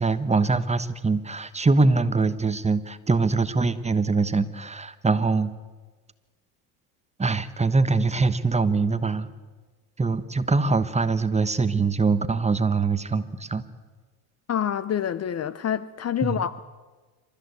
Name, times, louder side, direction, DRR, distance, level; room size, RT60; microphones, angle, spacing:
voice 1, 0.0-5.5 7.2-9.3 10.0-13.6 16.2-16.4, right 3 dB, 15° right, 1.1 m, -23 dB
voice 2, 14.5-16.6, left 9 dB, 35° left, 0.7 m, -27 dB
27.5 x 13.5 x 8.3 m
supercardioid pair, 100°, 47 cm